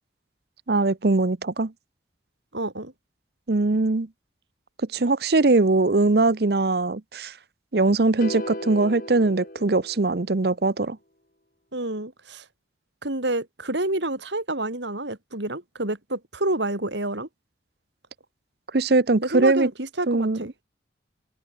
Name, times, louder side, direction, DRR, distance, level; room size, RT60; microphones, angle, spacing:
voice 1, 0.7-1.7 3.5-4.1 4.9-7.3 7.7-11.0 18.7-19.7 20.1-20.4, right 3 dB, 55° right, 0.8 m, -21 dB
voice 2, 2.5-2.9 11.7-12.4 13.0-17.3 19.2-20.5, right 2 dB, 75° right, 3.8 m, -28 dB
sound 1, 8.2-10.5, left 1 dB, 50° left, 5.6 m, -36 dB
head